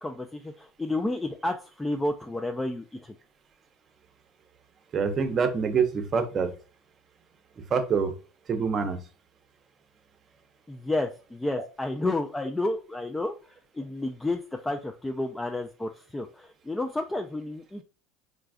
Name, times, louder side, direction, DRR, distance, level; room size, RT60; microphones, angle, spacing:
voice 1, 0.0-3.1 10.7-17.8, left 2 dB, 10° left, 4 dB, 0.3 m, -31 dB
voice 2, 4.9-6.5 7.7-8.1 8.5-9.0, right 5 dB, 35° right, 8 dB, 0.6 m, -25 dB
4.0 x 2.3 x 2.3 m, 0.36 s
supercardioid pair, 90°, 0 cm